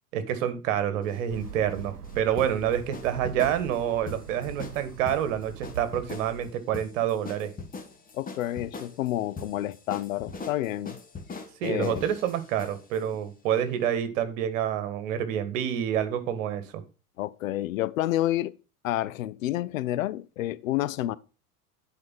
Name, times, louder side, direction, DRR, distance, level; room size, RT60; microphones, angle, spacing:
voice 1, 0.1-7.5 11.6-16.8, right 10 dB, 55° right, 1.7 m, -28 dB
sound 1, 1.0-13.0, left 3 dB, 20° left, 1.8 m, -42 dB
sound 2, 1.3-6.5, right 6 dB, 80° right, 0.8 m, -42 dB
voice 2, 8.1-11.0 11.6-12.0 17.2-18.5 18.8-21.2, left 14 dB, 60° left, 0.7 m, -29 dB
10.5 x 4.9 x 5.4 m
figure-of-eight pair, 80°, 46 cm